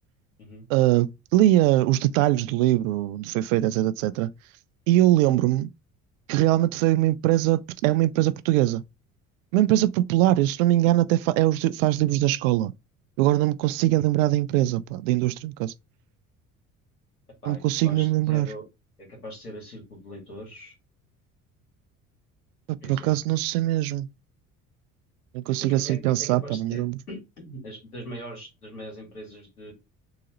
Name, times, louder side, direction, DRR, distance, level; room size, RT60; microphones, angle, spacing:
voice 1, 0.7-4.3 4.9-5.7 6.3-8.8 9.5-12.7 13.2-15.7 17.5-18.5 22.7-24.1 25.3-27.0, right 15 dB, 65° right, 0.5 m, -22 dB
voice 2, 17.4-18.6 19.0-20.7 22.8-23.2 25.7-29.7, equal, 85° left, 1.8 m, -41 dB
3.9 x 2.8 x 4.0 m
figure-of-eight pair, 55°, 44 cm